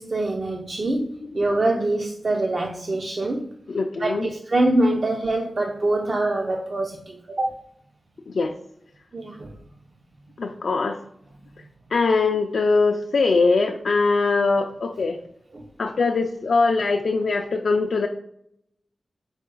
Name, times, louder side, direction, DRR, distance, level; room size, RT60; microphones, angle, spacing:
voice 1, 0.0-3.5 4.0-7.6 9.1-9.5 15.5-15.6, right 2 dB, 45° right, 1 dB, 0.5 m, -24 dB
voice 2, 3.7-4.3 8.3-8.5 10.4-11.0 11.9-15.2 15.8-18.1, left 3 dB, 70° left, 3 dB, 0.4 m, -22 dB
4.7 x 2.3 x 4.7 m, 0.71 s
wide cardioid pair, 105°, 0 cm